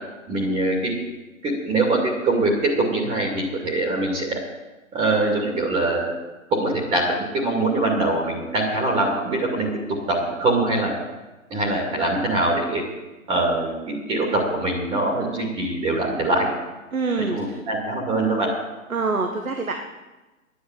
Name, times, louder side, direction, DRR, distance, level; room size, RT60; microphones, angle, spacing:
voice 1, 0.3-0.9 1.4-4.4 4.9-6.1 6.5-9.7 10.1-10.9 11.5-12.8 13.3-16.5 17.3-18.5, right 2 dB, 15° right, -1 dB, 2.4 m, -23 dB
voice 2, 16.9-17.6 18.9-19.7, right 4 dB, 80° right, 4 dB, 1.6 m, -25 dB
10.0 x 9.8 x 7.7 m, 1.1 s
figure-of-eight pair, 130°, 41 cm